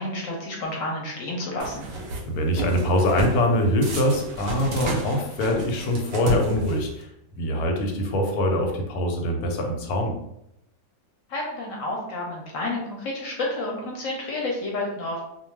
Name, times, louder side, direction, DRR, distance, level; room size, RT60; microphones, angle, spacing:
voice 1, 0.0-1.9 11.3-15.2, left 2 dB, 70° left, -1 dB, 0.9 m, -30 dB
sound 1, 1.6-2.2 2.6-3.4 3.8-7.0, right 1 dB, 65° right, 0.6 m, -31 dB
voice 2, 2.3-7.1 7.4-10.1, left 1 dB, 90° left, 3 dB, 1.1 m, -23 dB
2.3 x 2.2 x 3.2 m, 0.82 s
omnidirectional pair, 1.6 m